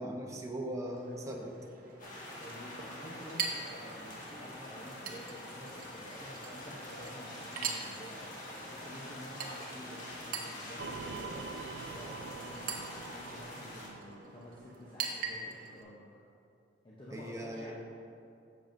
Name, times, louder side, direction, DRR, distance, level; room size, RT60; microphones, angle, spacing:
voice 1, 0.0-1.5 17.1-17.7, right 1 dB, 20° right, 0 dB, 0.9 m, -39 dB
Chink clink, 0.9-15.8, right 5 dB, 50° right, 0.9 m, -44 dB
sound 1, 2.0-13.9, left 1 dB, 50° left, 1.7 m, -46 dB
voice 2, 2.4-8.2 8.5-11.5 11.9-16.0 16.8-17.7, equal, 30° left, -6 dB, 0.8 m, -50 dB
sound 2, 10.8-15.2, right 4 dB, 85° right, 0.4 m, -46 dB
12.5 x 7.4 x 2.6 m, 2.5 s
head